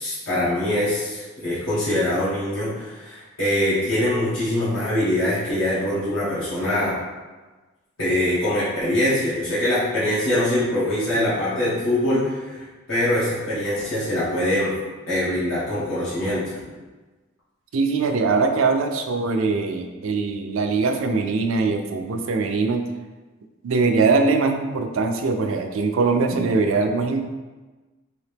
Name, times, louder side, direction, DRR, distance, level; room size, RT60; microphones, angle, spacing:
voice 1, 0.0-7.0 8.0-14.7 15.1-16.5, left 1 dB, 90° left, -11 dB, 1.4 m, -23 dB
voice 2, 17.7-22.8 23.6-27.2, right 4 dB, 85° right, 5 dB, 0.4 m, -22 dB
3.9 x 2.8 x 3.4 m, 1.3 s
head